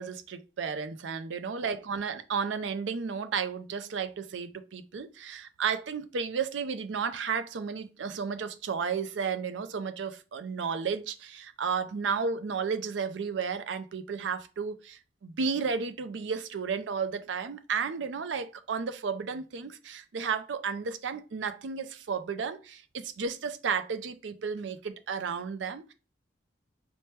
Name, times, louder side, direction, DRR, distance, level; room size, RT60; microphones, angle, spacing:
voice 1, 0.0-25.9, right 6 dB, 75° right, 0.4 m, -33 dB
4.3 x 2.1 x 3.2 m
head